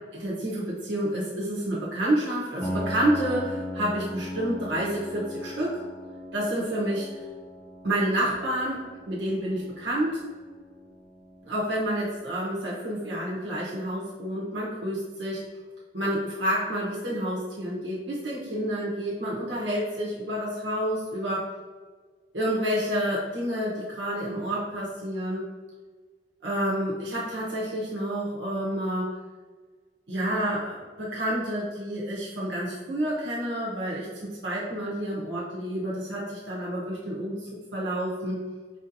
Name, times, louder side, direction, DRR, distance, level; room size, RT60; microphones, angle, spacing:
voice 1, 0.1-5.8 6.3-7.1 7.8-10.2 11.4-15.4 15.9-21.5 22.3-25.5 26.4-29.1 30.1-38.4, right 1 dB, 85° right, -6 dB, 0.9 m, -29 dB
Piano, 2.6-12.2, left 1 dB, 10° left, 0.3 m, -39 dB
4.9 x 2.7 x 2.6 m, 1.4 s
head